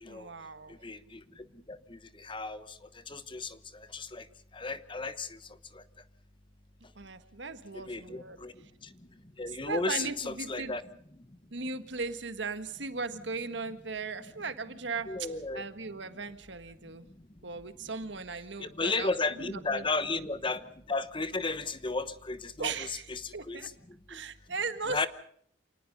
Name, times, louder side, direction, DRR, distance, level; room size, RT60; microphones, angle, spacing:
voice 1, 0.0-0.8 7.0-8.4 9.6-10.7 11.5-15.1 15.5-17.1 17.4-20.2 22.6-23.1 23.3-23.7 24.1-25.0, right 4 dB, 70° right, 10 dB, 1.6 m, -37 dB
voice 2, 0.7-4.3 4.5-5.4 5.7-5.8 7.7-8.5 8.8-8.9 9.4-10.8 15.1-15.6 16.1-16.2 18.6-24.2 24.9-25.1, left 3 dB, 25° left, 13 dB, 1.0 m, -35 dB
27.5 x 19.5 x 5.4 m, 0.63 s
head